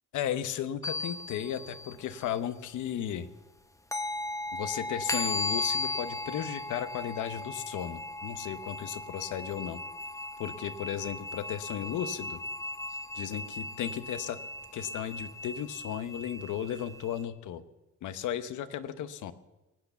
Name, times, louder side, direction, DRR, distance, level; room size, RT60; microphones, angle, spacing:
voice 1, 0.1-3.3 4.5-9.8 10.4-12.4 13.1-14.4 14.7-17.6 18.0-19.3, left 10 dB, 80° left, 13 dB, 1.0 m, -35 dB
sound 1, 0.8-2.3 3.9-17.2, left 2 dB, 10° left, 0.9 m, -37 dB
19.5 x 8.3 x 7.0 m, 1.1 s
cardioid pair, 90°, 30 cm